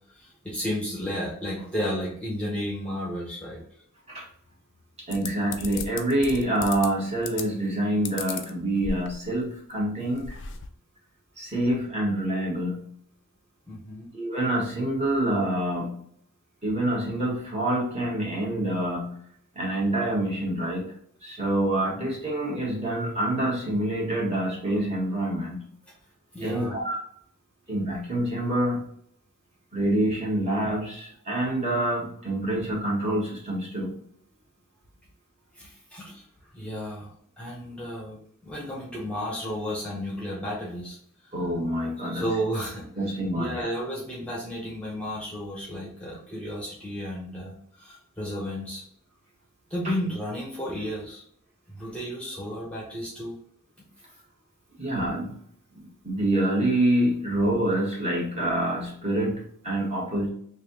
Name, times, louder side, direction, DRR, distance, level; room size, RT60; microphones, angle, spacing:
voice 1, 0.1-3.8 13.7-14.1 21.9-22.1 26.3-26.8 35.5-36.3 36.5-41.0 41.2-41.3 42.0-42.9 43.3-48.8 49.7-51.2 51.7-53.4, equal, 5° left, -4 dB, 0.8 m, -33 dB
sound 1, 5.1-6.9 7.2-7.7 8.1-9.3 9.7-9.8 10.0-10.7, left 5 dB, 55° left, 0.5 m, -35 dB
voice 2, 5.1-10.4 11.4-12.8 14.1-15.9 16.6-19.1 19.5-20.8 21.2-25.6 26.4-27.0 27.7-28.8 29.7-33.9 41.3-42.3 43.0-43.7 54.8-55.3 56.0-60.3, right 1 dB, 30° right, -4 dB, 1.3 m, -26 dB
3.3 x 2.7 x 3.9 m, 0.66 s
head